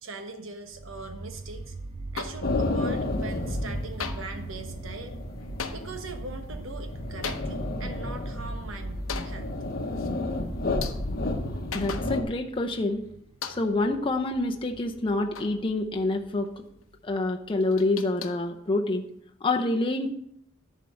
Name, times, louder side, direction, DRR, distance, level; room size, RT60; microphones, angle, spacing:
voice 1, 0.0-1.7 2.1-5.2 5.7-9.5, right 3 dB, 75° right, 6 dB, 1.1 m, -41 dB
sound 1, 0.7-17.7, right 2 dB, 30° right, 0.4 m, -41 dB
sound 2, 2.1-2.9 3.2-3.7 4.0-12.6 12.9-13.0 13.4-14.0 14.4-16.1 16.4-16.6 16.8-16.9 17.3-19.2, left 6 dB, 85° left, 0.8 m, -41 dB
sound 3, 2.4-12.2, left 2 dB, 50° left, 0.9 m, -32 dB
voice 2, 11.7-13.0 13.5-16.6 17.0-19.0 19.4-20.1, left 2 dB, 25° left, 3 dB, 0.6 m, -27 dB
10.5 x 4.6 x 6.4 m, 0.74 s
head